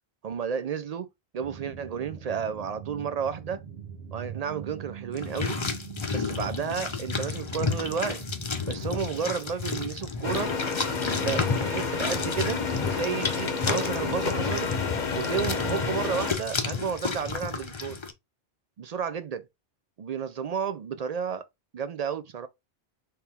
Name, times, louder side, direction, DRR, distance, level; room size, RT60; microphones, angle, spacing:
voice 1, 0.2-1.1 1.3-3.6 4.1-5.6 6.1-8.2 8.7-10.5 11.1-14.7 15.1-18.0 18.8-19.5 20.0-21.5 21.7-22.5, right 7 dB, 55° right, 0.4 m, -32 dB
sound 1, 1.4-9.3, right 8 dB, 80° right, 1.3 m, -42 dB
sound 2, 5.1-18.1, left 4 dB, 35° left, 0.6 m, -32 dB
sound 3, 10.2-16.3, left 4 dB, 50° left, 0.9 m, -30 dB
4.4 x 3.4 x 3.4 m
omnidirectional pair, 1.1 m